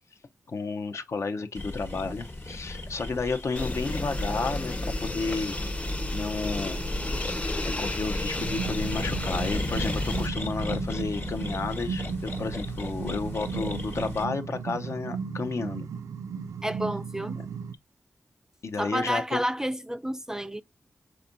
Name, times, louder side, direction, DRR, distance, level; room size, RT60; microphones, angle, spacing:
voice 1, 0.5-5.6 6.1-6.8 7.3-15.9 17.4-17.5 18.6-19.4, left 4 dB, 60° left, 0.7 m, -32 dB
sound 1, 1.5-14.2, left 2 dB, 45° left, 1.2 m, -35 dB
sound 2, 3.6-10.3, left 1 dB, 25° left, 0.7 m, -32 dB
sound 3, 8.4-17.7, right 6 dB, 85° right, 0.4 m, -36 dB
voice 2, 16.6-17.4 18.8-20.6, equal, 10° right, 0.3 m, -30 dB
5.7 x 3.6 x 2.6 m
cardioid pair, 70°, 5 cm